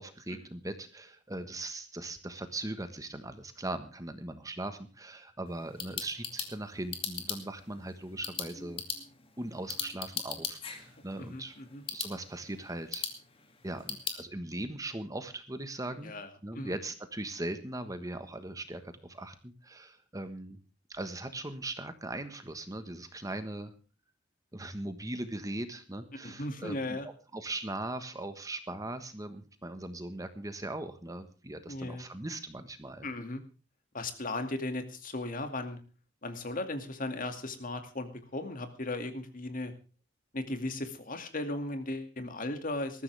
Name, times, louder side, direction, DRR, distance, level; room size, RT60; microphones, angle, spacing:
voice 1, 0.0-8.8 9.4-11.5 11.9-13.0 13.6-16.1 16.4-20.6 20.9-23.7 24.5-27.0 27.3-33.1, right 2 dB, 20° right, 9 dB, 1.3 m, -39 dB
sound 1, 5.5-14.2, left 6 dB, 30° left, 2.5 m, -40 dB
voice 2, 11.2-11.8 16.0-16.3 16.5-16.8 26.2-27.1 31.7-32.0 33.0-33.4 33.9-35.8 36.2-39.7 40.3-43.0, left 2 dB, 45° left, 7 dB, 2.3 m, -36 dB
20.0 x 14.0 x 3.5 m, 0.34 s
head